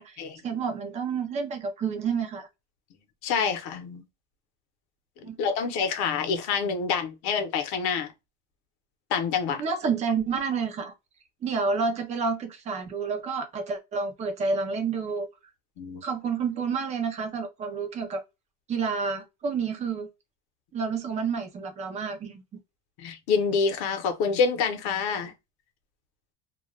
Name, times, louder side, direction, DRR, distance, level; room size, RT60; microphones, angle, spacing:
voice 1, 0.0-2.5 5.2-5.4 9.6-10.9 11.4-15.3 16.0-18.2 18.7-20.1 20.7-22.4, right 5 dB, 20° right, 0.3 m, -29 dB
voice 2, 3.2-4.0 5.2-8.1 9.1-9.6 15.8-16.0 23.0-25.3, left 5 dB, 55° left, 0.8 m, -27 dB
2.3 x 2.1 x 3.0 m
cardioid pair, 175°, 43 cm